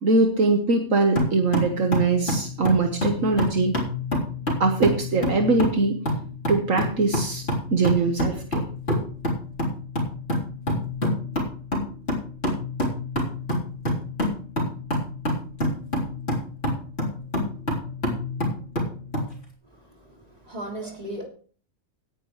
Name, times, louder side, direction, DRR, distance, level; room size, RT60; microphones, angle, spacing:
voice 1, 0.0-3.8 4.6-6.0 6.5-7.4 7.7-8.6, right 3 dB, 65° right, 4 dB, 1.6 m, -22 dB
sound 1, 1.2-19.3, left 1 dB, 45° left, 4.0 m, -28 dB
voice 2, 19.6-21.3, right 1 dB, 25° right, -1 dB, 3.3 m, -37 dB
17.5 x 9.9 x 3.2 m, 0.43 s
omnidirectional pair, 1.5 m